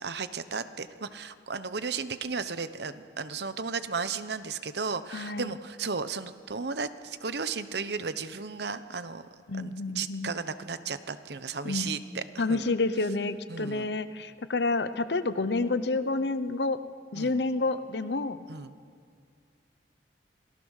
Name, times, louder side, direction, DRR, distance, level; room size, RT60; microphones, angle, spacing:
voice 1, 0.0-9.2 9.5-12.6 13.5-13.9 17.1-17.4 18.5-18.7, right 5 dB, 65° right, 12 dB, 0.9 m, -34 dB
voice 2, 5.1-5.5 9.5-10.3 11.6-11.9 12.4-16.8 17.1-18.5, left 3 dB, 70° left, 13 dB, 0.9 m, -29 dB
27.0 x 18.5 x 6.5 m, 2.2 s
head